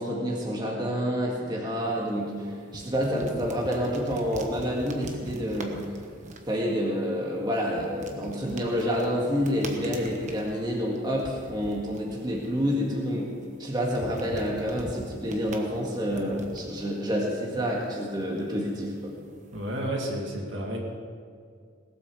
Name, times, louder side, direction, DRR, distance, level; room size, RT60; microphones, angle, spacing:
voice 1, 0.0-5.9 6.5-13.3 13.6-19.1, equal, 20° right, -2 dB, 1.8 m, -28 dB
sound 1, 1.7-19.9, right 2 dB, 35° right, 1.2 m, -44 dB
voice 2, 19.5-20.8, right 1 dB, 60° right, 0 dB, 2.3 m, -31 dB
18.5 x 8.3 x 6.5 m, 2.1 s
head